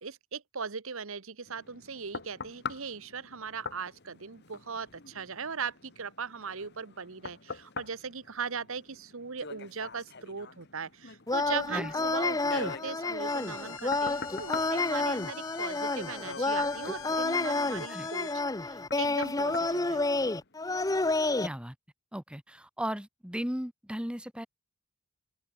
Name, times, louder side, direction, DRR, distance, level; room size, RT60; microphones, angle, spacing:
voice 1, 0.0-20.3, right 5 dB, 65° right, 1.1 m, -39 dB
sound 1, 1.5-20.7 21.2-21.4, left 5 dB, 50° left, 1.7 m, -45 dB
sound 2, 11.3-21.5, left 3 dB, 15° left, 0.6 m, -30 dB
sound 3, 13.3-18.3, left 8 dB, 65° left, 4.7 m, -47 dB
voice 2, 21.4-21.7 22.1-24.5, equal, 5° right, 1.3 m, -36 dB
open air
head